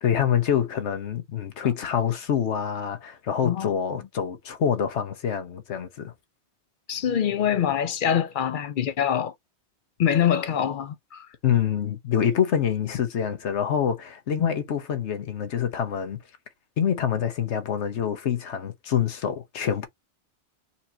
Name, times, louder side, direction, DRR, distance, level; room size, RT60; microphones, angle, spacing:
voice 1, 0.0-6.1 11.4-16.2 16.8-19.9, left 8 dB, 80° left, 1.2 m, -26 dB
voice 2, 6.9-9.3 10.0-11.3 14.4-14.5, left 9 dB, 60° left, 0.6 m, -24 dB
4.2 x 2.8 x 4.2 m
omnidirectional pair, 1.1 m